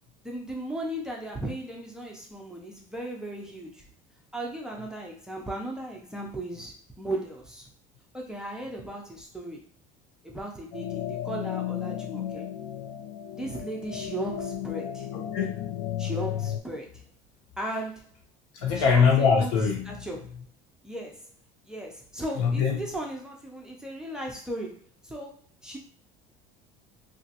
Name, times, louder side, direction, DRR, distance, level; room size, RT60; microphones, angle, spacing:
voice 1, 0.2-3.8 4.3-7.7 8.1-9.6 10.2-12.5 13.3-15.1 16.0-17.0 17.6-18.1 18.8-19.5 19.9-20.3 20.8-21.3 21.7-25.8, right 1 dB, 5° right, -1 dB, 0.4 m, -36 dB
sound 1, 10.7-16.6, left 11 dB, 70° left, 0.4 m, -34 dB
voice 2, 15.3-15.7 18.5-20.1 22.4-22.8, left 6 dB, 85° left, 0 dB, 1.1 m, -23 dB
2.9 x 2.6 x 2.7 m, 0.41 s
cardioid pair, 160°, 18 cm